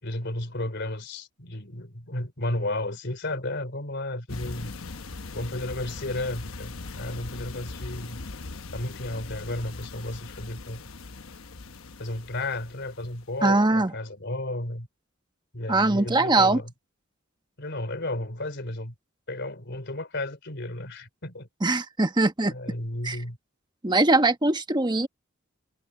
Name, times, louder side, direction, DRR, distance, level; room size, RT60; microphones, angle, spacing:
voice 1, 0.0-4.7 5.3-8.2 8.7-10.9 12.0-14.9 15.5-16.7 17.6-18.9 19.3-21.5 22.5-23.4, left 1 dB, 55° left, 3.5 m, -33 dB
sound 1, 4.3-13.4, left 3 dB, 90° left, 1.0 m, -40 dB
voice 2, 13.4-13.9 15.7-16.6 21.6-22.5 23.0-23.2 23.8-25.1, right 2 dB, 20° right, 1.2 m, -21 dB
head